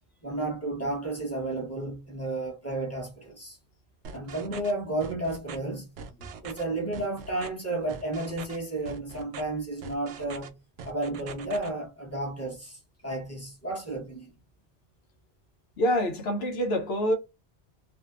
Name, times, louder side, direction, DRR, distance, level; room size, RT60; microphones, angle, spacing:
voice 1, 0.2-3.6 4.1-5.9 6.2-10.6 10.8-14.3, right 2 dB, 15° left, 0.9 m, -32 dB
sound 1, 4.0-4.7 5.0-5.6 6.0-6.6 6.9-7.5 7.9-8.6 8.9-9.4 9.8-10.5 10.8-11.7, right 5 dB, 90° right, 0.9 m, -42 dB
voice 2, 15.8-17.1, equal, 70° left, 0.9 m, -26 dB
2.7 x 2.2 x 2.3 m
omnidirectional pair, 1.1 m